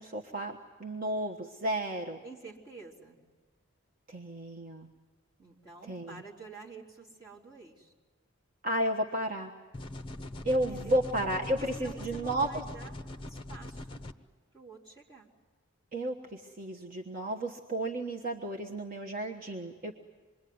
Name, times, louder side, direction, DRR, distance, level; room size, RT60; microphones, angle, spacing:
voice 1, 0.0-2.2 4.1-4.9 5.9-6.2 8.6-9.5 10.4-12.6 15.9-19.9, right 1 dB, 40° right, 0 dB, 1.3 m, -32 dB
voice 2, 2.2-3.2 5.4-7.9 10.7-11.0 11.4-12.9 13.2-14.0 14.5-15.3, right 4 dB, 20° right, -6 dB, 4.0 m, -49 dB
sound 1, 9.7-14.1, left 1 dB, 25° left, 0.9 m, -42 dB
26.5 x 22.5 x 9.6 m, 1.4 s
head